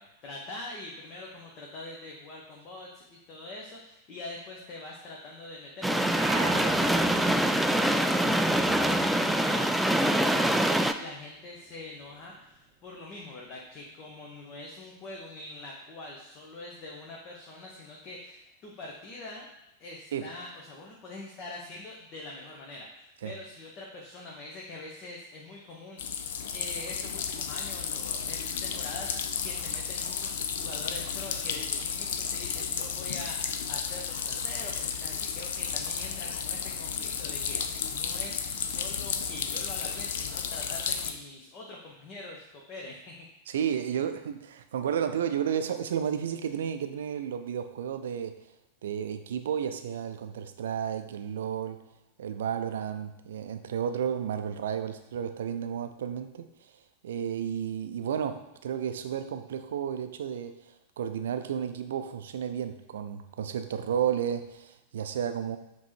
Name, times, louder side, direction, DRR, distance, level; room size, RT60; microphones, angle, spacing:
voice 1, 0.0-19.5 19.8-26.3 26.5-43.3, left 2 dB, 35° left, -2 dB, 1.0 m, -44 dB
sound 1, 5.8-10.9, right 1 dB, ahead, 0.3 m, -24 dB
sound 2, 6.1-10.9 11.3-12.7, right 4 dB, 20° right, 0.8 m, -39 dB
sound 3, 26.0-41.1, left 7 dB, 55° left, 0.5 m, -33 dB
voice 2, 43.5-48.4 48.8-51.8 52.2-56.5 57.0-60.5 61.0-65.6, right 8 dB, 60° right, 8 dB, 0.5 m, -32 dB
7.6 x 3.1 x 4.5 m, 0.87 s
figure-of-eight pair, 90°, 0 cm